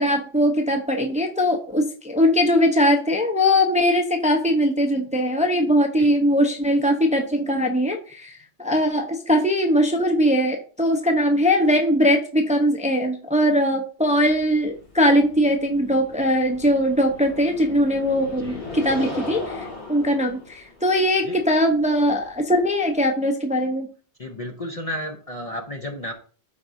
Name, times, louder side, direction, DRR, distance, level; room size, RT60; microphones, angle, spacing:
voice 1, 0.0-23.9, equal, 5° right, 3 dB, 0.7 m, -21 dB
sound 1, 14.2-23.1, left 3 dB, 75° left, 2.7 m, -38 dB
voice 2, 18.4-18.7 21.2-21.4 24.2-26.1, left 1 dB, 35° left, 3 dB, 0.7 m, -32 dB
13.0 x 4.7 x 2.6 m, 0.41 s
omnidirectional pair, 1.2 m